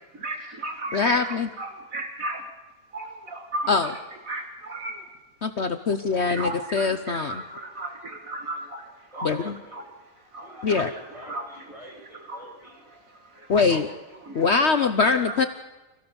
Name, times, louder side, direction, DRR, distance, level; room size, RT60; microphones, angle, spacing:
voice 1, 0.1-2.5 2.9-5.1 6.1-9.9 10.2-11.5 11.9-12.0 12.2-12.5 12.9-13.8 14.1-14.6 15.3-15.5, right 2 dB, 65° right, 3 dB, 2.4 m, -35 dB
voice 2, 0.9-1.5 3.7-3.9 5.4-7.4 9.2-9.5 10.6-10.9 13.5-13.9 14.3-15.5, left 4 dB, 50° left, 9 dB, 1.1 m, -23 dB
voice 3, 9.1-9.9 10.4-12.9, equal, 20° right, -2 dB, 8.2 m, -47 dB
25.5 x 17.0 x 7.0 m, 1.1 s
omnidirectional pair, 1.6 m